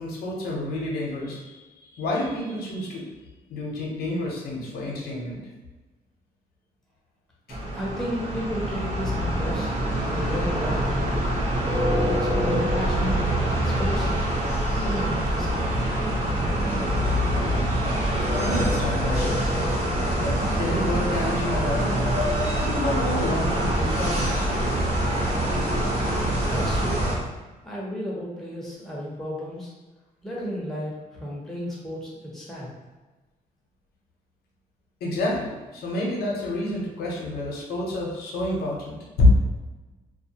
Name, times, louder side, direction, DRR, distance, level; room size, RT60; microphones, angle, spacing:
voice 1, 0.0-3.1 3.5-5.4 7.5-7.6 18.3-19.4 20.1-21.9 22.6-24.4 35.0-39.3, left 2 dB, 80° left, -2 dB, 0.7 m, -28 dB
sound 1, 7.5-27.2, right 1 dB, 45° right, 0.8 m, -25 dB
voice 2, 7.8-9.7 10.0-11.1 11.7-14.1 14.7-15.7 26.4-27.1 27.6-29.7 30.2-32.7, equal, 5° left, -5 dB, 0.8 m, -33 dB
2.3 x 2.2 x 2.7 m, 1.2 s
cardioid pair, 100°, 16 cm